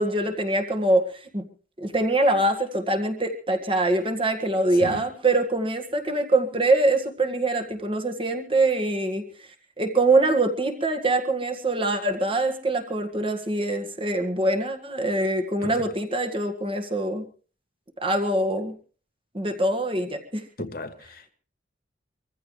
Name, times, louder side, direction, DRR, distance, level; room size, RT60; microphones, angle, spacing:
voice 1, 0.0-1.4 1.8-9.2 9.8-17.3 18.0-18.7 19.3-20.4, right 2 dB, 30° right, 1.8 m, -24 dB
voice 2, 20.6-21.3, left 2 dB, 50° left, 1.2 m, -35 dB
24.0 x 15.0 x 3.3 m
head